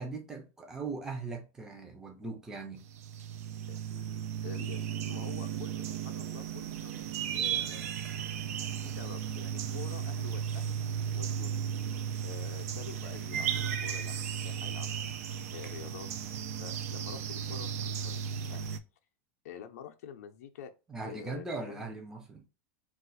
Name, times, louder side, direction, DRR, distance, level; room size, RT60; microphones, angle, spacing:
voice 1, 0.0-2.9 20.9-22.4, right 3 dB, 5° right, 0.4 m, -40 dB
sound 1, 2.8-18.8, right 8 dB, 85° right, 0.4 m, -35 dB
voice 2, 3.7-7.1 7.3-7.9 8.8-11.9 12.2-15.2 15.5-16.1 16.6-18.2 18.5-18.8 19.4-20.7 21.0-21.9, left 9 dB, 85° left, 0.4 m, -48 dB
2.4 x 2.3 x 3.9 m
supercardioid pair, 160°, 8 cm